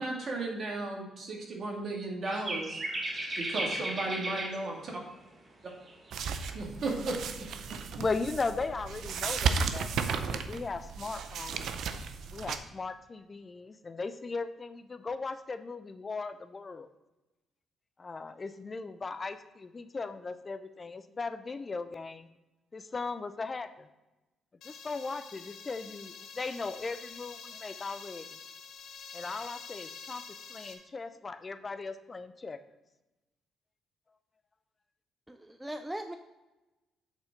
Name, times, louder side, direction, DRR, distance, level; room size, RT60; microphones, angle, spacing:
voice 1, 0.0-2.8 3.4-4.8 6.5-7.4, right 2 dB, 55° right, -1 dB, 2.3 m, -35 dB
sound 1, 2.2-4.7 5.7-6.6 7.4-7.8, right 1 dB, 35° right, 1.5 m, -35 dB
sound 2, 6.1-12.6, right 5 dB, 70° right, 0.5 m, -34 dB
voice 2, 8.0-12.0 12.3-16.9 18.0-22.3 22.7-23.9 24.6-28.3 29.1-30.2 30.5-32.6, left 4 dB, 35° left, 11 dB, 0.5 m, -38 dB
sound 3, 24.6-30.7, left 5 dB, 75° left, 1.0 m, -47 dB
voice 3, 35.3-36.2, right 1 dB, 10° right, 7 dB, 0.5 m, -39 dB
8.2 x 4.2 x 5.1 m, 1.0 s
supercardioid pair, 60°, 0 cm